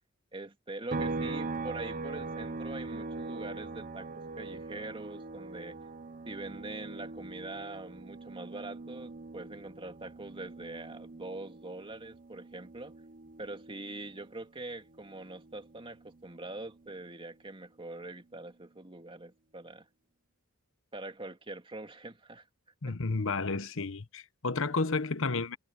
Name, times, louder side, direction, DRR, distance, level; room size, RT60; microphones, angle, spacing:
voice 1, 0.3-5.8 6.3-13.0 13.4-19.9 20.9-22.5 22.8-22.9, right 2 dB, 25° right, 2.6 m, -43 dB
sound 1, 0.9-14.5 14.8-17.0, right 3 dB, 40° right, 0.8 m, -41 dB
voice 2, 22.8-25.6, left 3 dB, 65° left, 1.2 m, -31 dB
head